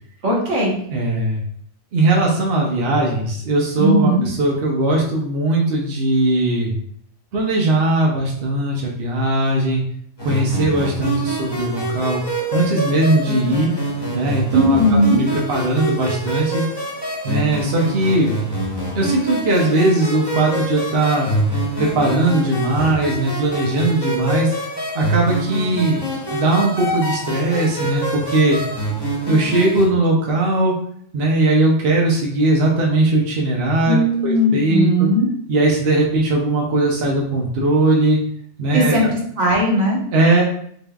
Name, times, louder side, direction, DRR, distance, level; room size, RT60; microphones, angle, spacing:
voice 1, 0.2-0.7 3.8-4.2 14.5-15.2 33.8-35.3 38.7-40.0, equal, 75° right, -3 dB, 1.4 m, -17 dB
voice 2, 0.9-1.4 1.9-6.7 7.3-9.8 10.2-12.2 12.5-13.7 14.1-14.8 15.1-16.6 17.2-18.3 19.0-21.3 21.8-24.5 24.9-26.0 26.3-28.6 29.3-30.8 31.1-33.9 34.2-35.1 35.5-38.2 38.6-39.1 40.1-40.4, right 2 dB, 60° right, -2 dB, 0.9 m, -19 dB
sound 1, 10.2-29.9, right 1 dB, 20° left, 0.9 m, -26 dB
3.9 x 3.5 x 2.3 m, 0.65 s
omnidirectional pair, 1.3 m